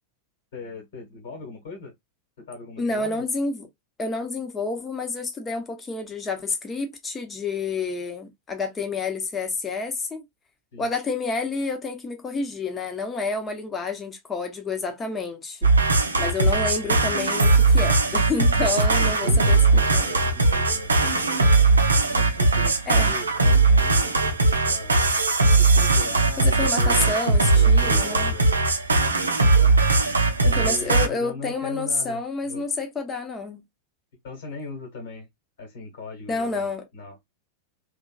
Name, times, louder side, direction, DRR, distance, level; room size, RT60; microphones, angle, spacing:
voice 1, 0.5-1.9 2.4-3.2 10.7-10.9 18.6-21.7 22.1-24.1 24.6-25.0 25.6-27.1 27.5-28.7 29.6-29.7 30.5-32.7 34.2-35.3 35.6-37.2, left 3 dB, 60° left, 1.3 m, -39 dB
voice 2, 2.8-3.7 4.0-10.2 10.8-15.7 16.2-20.1 22.9-23.2 26.4-28.3 30.4-33.6 36.3-36.9, left 3 dB, 20° left, 0.8 m, -29 dB
sound 1, 15.6-31.1, right 3 dB, 75° right, 0.5 m, -19 dB
2.9 x 2.4 x 2.3 m
figure-of-eight pair, 90°, 0 cm